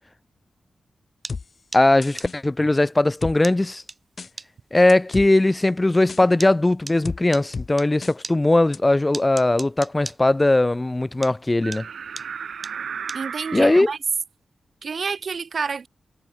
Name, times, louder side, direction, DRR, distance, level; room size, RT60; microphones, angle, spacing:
sound 1, 1.2-7.9 8.2-11.0 11.2-13.8, right 3 dB, 25° right, 7.8 m, -38 dB
sound 2, 1.3-1.4 2.0-2.4 3.2-3.4 4.2-4.3 4.9-5.3 6.1-6.2 7.0-7.2 7.5-7.7 8.0-8.1 8.7-8.8, left 4 dB, 45° left, 0.9 m, -32 dB
voice 1, 1.7-3.8 4.7-11.9 13.5-13.9, left 2 dB, 15° left, 0.5 m, -19 dB
sound 3, 11.6-13.9, right 7 dB, 80° right, 2.9 m, -34 dB
voice 2, 13.1-14.0 14.8-15.9, right 5 dB, 55° right, 1.1 m, -29 dB
wide cardioid pair, 135°, 0 cm